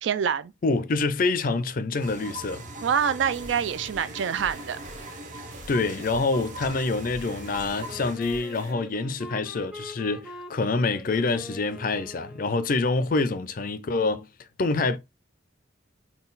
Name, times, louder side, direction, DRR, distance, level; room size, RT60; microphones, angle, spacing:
voice 1, 0.0-0.5 2.8-4.8, right 7 dB, 70° right, 0.3 m, -26 dB
voice 2, 0.6-2.6 5.7-14.3 14.6-15.0, left 3 dB, 45° left, 0.4 m, -26 dB
sound 1, 2.0-8.2, right 1 dB, 40° right, 0.7 m, -40 dB
sound 2, 3.3-8.7, right 1 dB, 90° right, 1.7 m, -47 dB
Wind instrument woodwind instrument, 7.8-12.9, left 1 dB, 5° right, 0.6 m, -43 dB
3.9 x 2.3 x 3.9 m
head